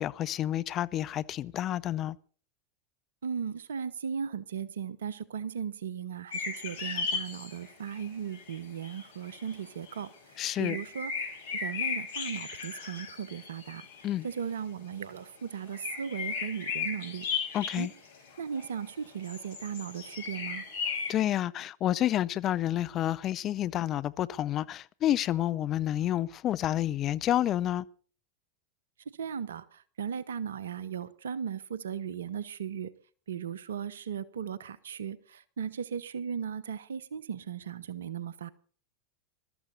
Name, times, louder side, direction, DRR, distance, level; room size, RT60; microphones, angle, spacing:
voice 1, 0.0-2.2 10.4-10.8 14.0-14.3 17.5-17.9 21.1-27.9, left 12 dB, 40° left, 0.7 m, -29 dB
voice 2, 3.2-10.1 10.6-11.1 11.5-13.9 14.2-17.2 17.7-17.9 18.4-20.6 29.2-32.9 33.3-38.5, right 7 dB, 75° right, 0.9 m, -37 dB
sound 1, 6.3-8.1 8.3-10.0 10.5-14.3 15.7-18.9 19.2-21.1, left 6 dB, 70° left, 4.6 m, -36 dB
21.0 x 13.0 x 4.1 m
hypercardioid pair, 90°, 0 cm